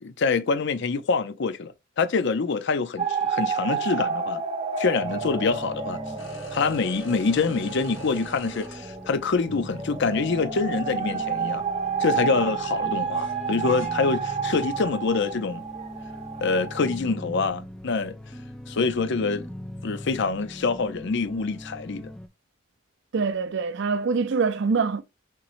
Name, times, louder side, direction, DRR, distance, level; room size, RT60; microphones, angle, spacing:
voice 1, 0.0-4.4 4.8-6.0 6.5-11.6 12.0-15.6 16.4-18.2 18.7-19.5 19.8-22.1, left 4 dB, 65° left, 0.6 m, -25 dB
sound 1, 3.0-17.0, right 6 dB, 35° right, 0.8 m, -31 dB
sound 2, 5.0-22.3, left 1 dB, 5° left, 0.3 m, -40 dB
sound 3, 6.2-8.7 9.8-9.9 13.1-13.9, left 1 dB, 80° left, 1.5 m, -44 dB
voice 2, 23.1-25.0, right 5 dB, 65° right, 0.5 m, -24 dB
5.8 x 3.1 x 2.5 m
head